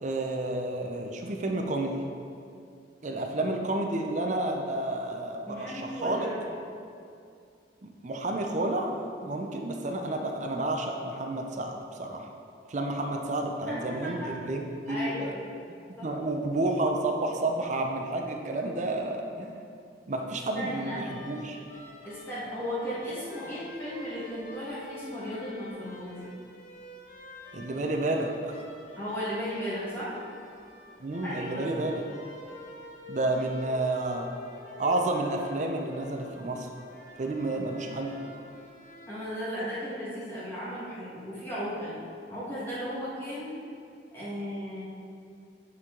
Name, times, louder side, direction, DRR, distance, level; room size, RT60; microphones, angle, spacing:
voice 1, 0.0-2.0 3.0-6.3 7.8-12.3 12.7-15.3 16.0-19.6 20.1-21.6 27.5-28.6 31.0-32.0 33.1-34.3 34.8-36.7 37.2-38.1, right 2 dB, 40° right, 2 dB, 0.5 m, -30 dB
voice 2, 5.5-6.4 13.7-14.3 14.9-15.4 16.0-16.1 20.5-21.0 22.0-26.3 29.0-30.2 31.2-31.7 39.1-42.0 42.3-43.6 44.1-44.8, equal, 15° left, -10 dB, 1.6 m, -35 dB
sound 1, 20.8-39.3, left 1 dB, 45° left, 0.9 m, -48 dB
8.4 x 4.6 x 3.7 m, 2.5 s
head